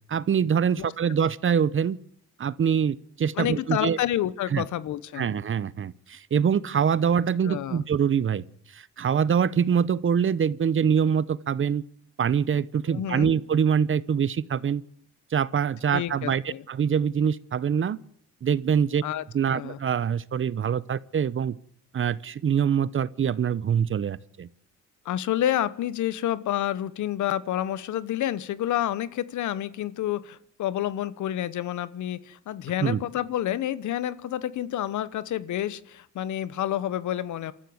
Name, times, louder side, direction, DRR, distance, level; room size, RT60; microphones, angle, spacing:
voice 1, 0.1-2.0 2.4-4.0 4.5-4.6 5.2-8.4 8.7-11.8 12.2-14.8 15.3-16.4 16.7-18.0 18.4-19.0 19.3-21.6 21.9-24.5 32.8-33.0, right 7 dB, 45° right, 0.9 m, -24 dB
voice 2, 3.4-5.3 7.0-7.1 7.4-7.8 12.9-13.3 15.9-16.6 19.0-19.2 19.5-19.8 25.0-37.5, left 12 dB, 75° left, 1.2 m, -29 dB
27.5 x 14.0 x 7.9 m
cardioid pair, 90°, 30 cm